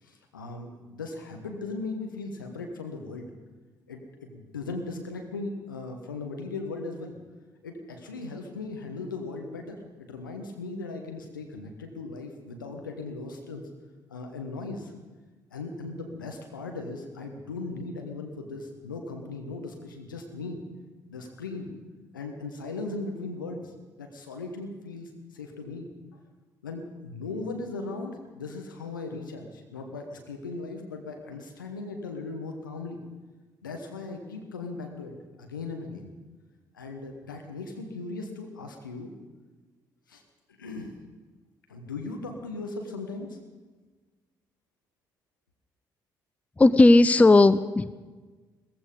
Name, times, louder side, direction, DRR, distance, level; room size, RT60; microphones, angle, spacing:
voice 1, 0.0-3.3 3.9-7.2 7.6-13.6 14.1-14.9 15.5-20.6 21.1-21.7 22.1-23.7 24.0-25.9 26.6-33.0 33.6-36.1 36.7-39.1 40.1-40.2 40.5-40.9 41.7-43.4, left 3 dB, 80° left, 3 dB, 1.4 m, -38 dB
voice 2, 46.6-48.0, left 2 dB, 15° left, 15 dB, 0.5 m, -17 dB
18.0 x 15.0 x 5.3 m, 1.3 s
figure-of-eight pair, 45°, 11 cm